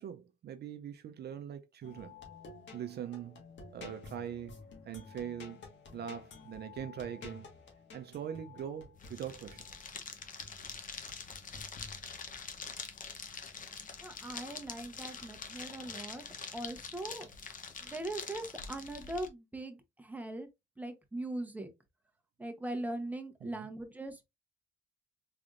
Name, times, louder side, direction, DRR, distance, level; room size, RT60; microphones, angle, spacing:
voice 1, 0.0-2.2 2.7-3.4 3.7-4.6 4.9-5.6 5.9-7.5 7.9-9.7 23.4-23.7, right 9 dB, 55° right, 0.5 m, -42 dB
sound 1, 1.8-12.5 14.3-15.5 15.8-16.9 17.4-17.8, left 4 dB, 70° left, 1.5 m, -52 dB
sound 2, 9.0-19.3, left 5 dB, 40° left, 0.8 m, -45 dB
voice 2, 14.0-16.2 16.5-17.3 17.8-20.5 20.8-21.7 22.4-24.2, right 1 dB, 10° right, 0.9 m, -40 dB
3.8 x 3.4 x 2.5 m
cardioid pair, 90°, 20 cm